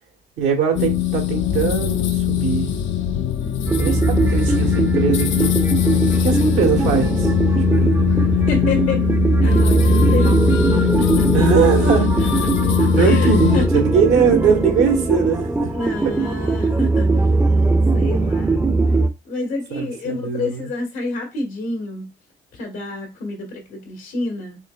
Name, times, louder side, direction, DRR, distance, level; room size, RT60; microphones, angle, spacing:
voice 1, 0.4-2.7 3.8-5.5 6.2-7.3 7.7-7.9 11.3-12.5 12.9-15.7 19.7-20.7, right 6 dB, 85° right, 1.1 m, -21 dB
sound 1, 0.7-13.7, left 12 dB, 70° left, 0.5 m, -21 dB
voice 2, 3.4-3.9 8.0-9.1 9.4-11.7 12.0-12.3 12.6-13.6 15.7-17.3 17.9-22.1 22.5-24.6, left 2 dB, 85° left, 1.5 m, -29 dB
sound 2, 3.7-19.1, right 3 dB, 10° right, 0.4 m, -19 dB
4.4 x 2.9 x 2.3 m
cardioid pair, 90°, 20 cm